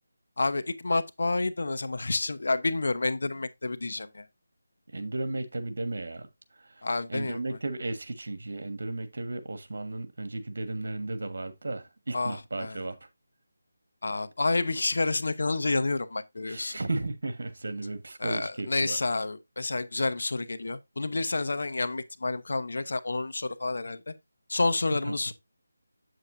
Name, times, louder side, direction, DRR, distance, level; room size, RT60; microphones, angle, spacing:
voice 1, 0.4-4.2 6.8-7.4 12.1-12.8 14.0-16.8 18.2-24.0 24.5-25.3, left 3 dB, 70° left, 0.9 m, -29 dB
voice 2, 4.9-6.3 7.1-13.0 16.5-19.0 25.0-25.1, right 2 dB, 65° right, 1.4 m, -34 dB
8.1 x 7.7 x 2.6 m
figure-of-eight pair, 165°, 0 cm